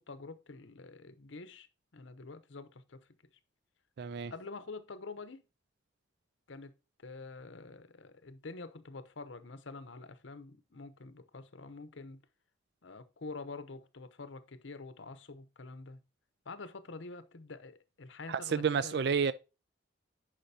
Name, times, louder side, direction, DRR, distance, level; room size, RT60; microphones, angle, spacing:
voice 1, 0.0-1.7 1.9-3.1 4.3-5.4 6.5-6.7 7.0-12.2 12.8-16.0 16.5-19.1, left 3 dB, 70° left, 0.8 m, -47 dB
voice 2, 4.0-4.3 18.3-19.3, right 6 dB, 55° right, 0.4 m, -30 dB
10.0 x 5.1 x 2.8 m
head